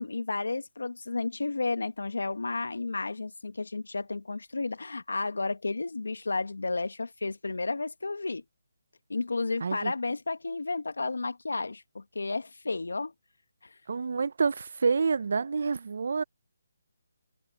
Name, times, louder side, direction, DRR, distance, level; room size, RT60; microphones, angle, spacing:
voice 1, 0.0-8.4 9.1-13.1 13.6-13.7, left 3 dB, 80° left, 1.8 m, -32 dB
voice 2, 9.6-9.9 13.9-16.2, right 5 dB, 60° right, 0.7 m, -28 dB
figure-of-eight pair, 155°, 0 cm